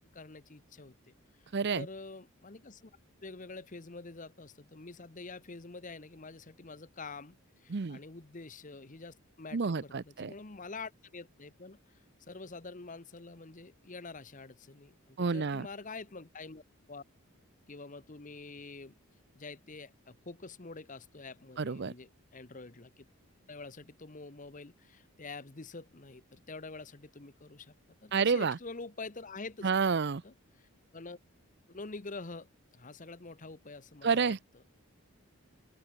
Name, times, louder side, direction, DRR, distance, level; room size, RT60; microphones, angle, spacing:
voice 1, 0.1-1.1 1.7-2.9 3.2-11.8 12.3-16.6 16.9-17.0 17.7-19.0 19.3-23.0 23.5-27.7 28.0-29.7 30.2-31.2 31.7-34.3, left 3 dB, 35° left, 1.0 m, -46 dB
voice 2, 1.5-1.9 7.7-8.0 9.5-10.3 15.2-15.7 21.6-21.9 28.1-28.6 29.6-30.2 34.0-34.4, right 5 dB, 50° right, 0.6 m, -29 dB
open air
head